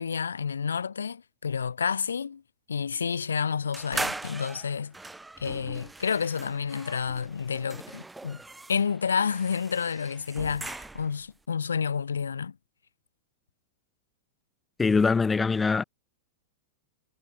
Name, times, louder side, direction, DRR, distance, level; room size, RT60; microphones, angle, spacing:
voice 1, 0.0-2.4 2.7-4.9 5.4-8.4 8.7-12.6, left 6 dB, 80° left, 2.1 m, -30 dB
sound 1, 3.7-11.3, right 2 dB, 10° right, 2.2 m, -40 dB
voice 2, 14.8-15.8, left 4 dB, 15° left, 0.9 m, -23 dB
figure-of-eight pair, 95°, 0 cm